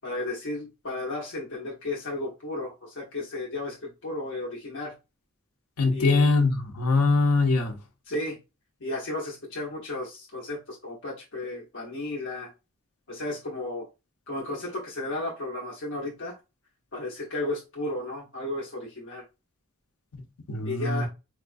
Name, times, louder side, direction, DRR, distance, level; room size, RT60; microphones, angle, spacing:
voice 1, 0.0-4.9 5.9-6.3 8.1-8.4 8.8-12.5 13.1-13.9 14.3-16.4 16.9-19.2 20.6-21.1, left 2 dB, 60° left, 0.9 m, -34 dB
voice 2, 5.8-7.7 20.5-21.1, left 3 dB, 90° left, 0.8 m, -22 dB
4.2 x 2.3 x 2.5 m
head